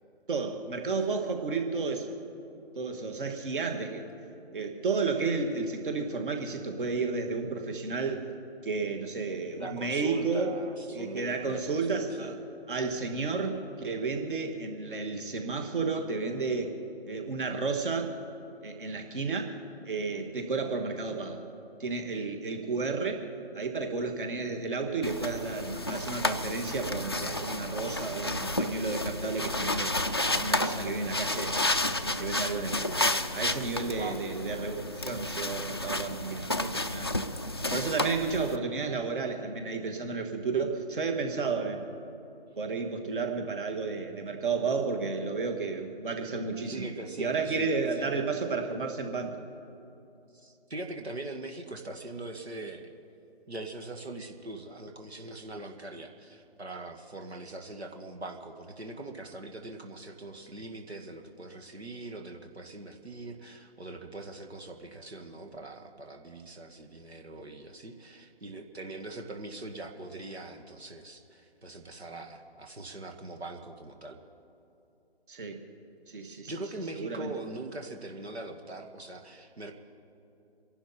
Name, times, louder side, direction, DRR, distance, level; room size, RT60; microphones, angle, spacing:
voice 1, 0.3-2.2 2.8-4.1 4.5-8.2 8.6-10.5 10.9-12.3 12.7-16.8 17.1-18.1 18.6-19.6 19.8-21.4 21.8-23.3 23.5-29.9 30.4-31.6 32.0-37.1 37.7-41.8 42.6-46.9 47.2-49.5 75.3-75.6 76.1-76.5 76.9-77.3, right 4 dB, 55° right, 4 dB, 2.1 m, -32 dB
voice 2, 9.6-12.3 34.0-34.2 46.7-48.2 50.3-52.9 53.5-74.2 76.2-79.7, right 2 dB, 85° right, 3 dB, 1.8 m, -42 dB
sound 1, 25.0-38.6, left 2 dB, 25° left, 0.4 m, -31 dB
28.0 x 11.5 x 4.3 m, 2.8 s
figure-of-eight pair, 155°, 31 cm